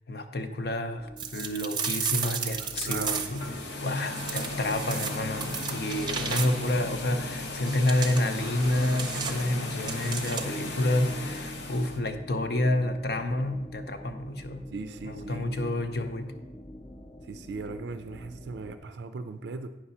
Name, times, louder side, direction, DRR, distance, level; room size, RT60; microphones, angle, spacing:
voice 1, 0.1-14.7 15.0-16.4, left 1 dB, 60° left, 6 dB, 0.7 m, -29 dB
sound 1, 1.0-18.8, left 1 dB, 25° left, 0.5 m, -47 dB
sound 2, 1.2-3.5 4.2-6.8 7.7-10.7, right 6 dB, 25° right, 0.6 m, -34 dB
voice 2, 2.6-3.2 14.7-15.6 17.2-19.7, right 4 dB, 75° right, 9 dB, 0.4 m, -39 dB
sound 3, 3.2-12.0, left 2 dB, 80° left, 1.0 m, -36 dB
9.0 x 6.0 x 4.2 m, 1.1 s
head